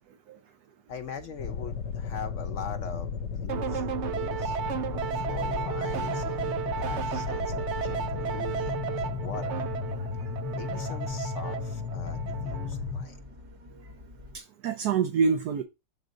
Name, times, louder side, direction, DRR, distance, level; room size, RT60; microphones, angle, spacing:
voice 1, 0.9-4.6 5.1-9.6 10.5-13.2, left 6 dB, 65° left, 0.8 m, -42 dB
sound 1, 0.9-14.4, left 2 dB, 35° right, 0.5 m, -50 dB
sound 2, 1.4-13.1, left 5 dB, 90° left, 1.2 m, -34 dB
sound 3, 3.5-12.9, right 8 dB, 90° right, 0.6 m, -34 dB
voice 2, 14.3-15.6, right 5 dB, 70° right, 1.3 m, -27 dB
8.0 x 3.7 x 5.1 m
omnidirectional pair, 1.8 m